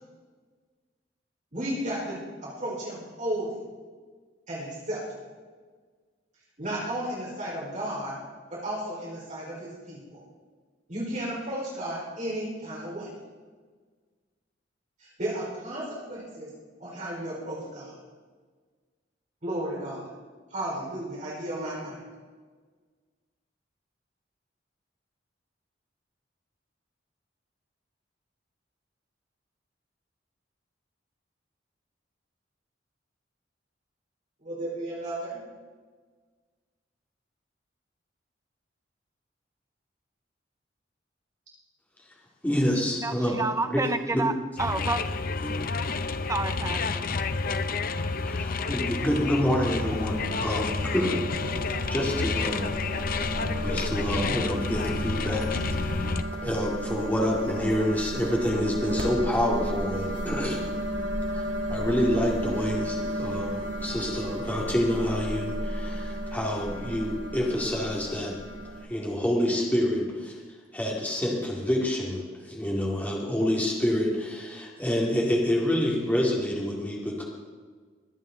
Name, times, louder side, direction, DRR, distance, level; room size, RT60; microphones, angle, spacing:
voice 1, 1.5-3.6 4.5-5.3 6.6-8.2 8.6-10.2 10.9-13.1 15.0-16.5 16.8-17.9 19.4-20.0 20.5-22.0 34.4-35.4, right 1 dB, 40° right, -6 dB, 4.7 m, -34 dB
voice 2, 42.4-43.8 44.1-44.2 45.4-45.6 48.2-51.2 51.9-52.7 53.2-53.3 53.6-55.6 56.4-60.6 61.3-68.4 68.8-70.4 70.7-77.2, left 1 dB, 10° left, -3 dB, 2.2 m, -27 dB
voice 3, 43.0-44.3 44.6-45.0 46.3-47.1, right 3 dB, 15° right, 9 dB, 0.5 m, -29 dB
sound 1, 44.6-56.2, left 4 dB, 50° left, 0.6 m, -30 dB
sound 2, 49.7-68.9, right 1 dB, 70° right, 2.2 m, -33 dB
22.5 x 9.0 x 3.9 m, 1.5 s
head